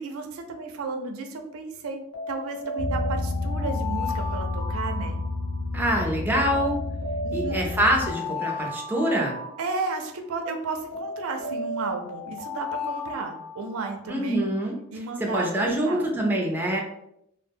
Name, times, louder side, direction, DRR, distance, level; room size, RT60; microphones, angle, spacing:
voice 1, 0.0-2.0 2.3-5.2 7.2-7.7 9.6-14.4 14.9-16.1, right 3 dB, 85° right, 5 dB, 0.4 m, -33 dB
Alarm, 2.1-5.8 6.5-10.2 10.9-14.1, left 2 dB, 85° left, 0.9 m, -35 dB
sound 1, 2.8-8.1, left 2 dB, 60° left, 0.4 m, -30 dB
voice 2, 5.7-6.8 7.3-9.4 14.1-14.8 15.3-16.8, right 1 dB, 10° right, 0 dB, 0.4 m, -25 dB
2.0 x 2.0 x 3.4 m, 0.78 s
head